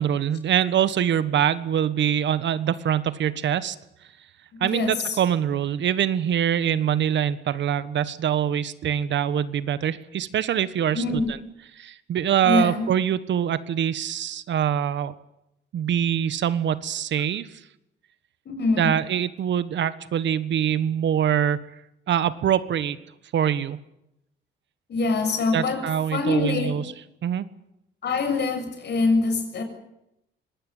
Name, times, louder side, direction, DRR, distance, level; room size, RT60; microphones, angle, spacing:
voice 1, 0.0-3.7 4.6-11.0 11.8-15.1 15.7-17.5 18.8-21.6 22.1-23.0 23.3-23.8 25.5-26.8 27.2-27.5, right 9 dB, 65° right, 15 dB, 1.4 m, -24 dB
voice 2, 4.5-5.2 10.9-11.3 12.4-12.9 18.4-18.9 24.9-25.8 26.1-26.8 28.0-29.6, left 3 dB, 60° left, 6 dB, 6.7 m, -24 dB
23.5 x 19.0 x 9.5 m, 0.84 s
cardioid pair, 90°, 20 cm